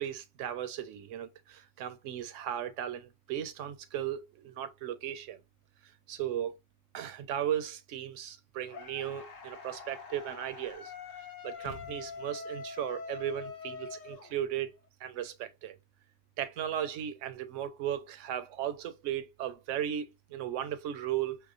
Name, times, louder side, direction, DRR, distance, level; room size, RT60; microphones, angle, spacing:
voice 1, 0.0-5.4 6.1-6.6 6.9-10.9 11.4-14.7 15.0-15.8 16.4-21.4, right 10 dB, 75° right, 0.9 m, -36 dB
sound 1, 8.7-14.8, left 5 dB, 90° left, 1.0 m, -44 dB
sound 2, 11.6-12.6, left 3 dB, 45° left, 0.6 m, -50 dB
4.7 x 2.1 x 2.4 m
omnidirectional pair, 1.3 m